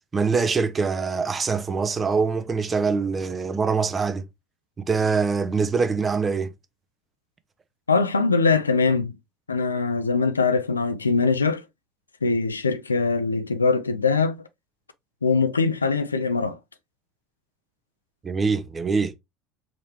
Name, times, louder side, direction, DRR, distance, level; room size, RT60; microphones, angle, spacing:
voice 1, 0.1-4.3 4.8-6.5 18.2-19.1, right 5 dB, 25° right, 0.6 m, -24 dB
voice 2, 7.9-9.1 9.5-11.6 12.2-14.4 15.2-16.6, left 4 dB, 90° left, 0.3 m, -22 dB
3.9 x 3.1 x 2.8 m
hypercardioid pair, 65°, 0 cm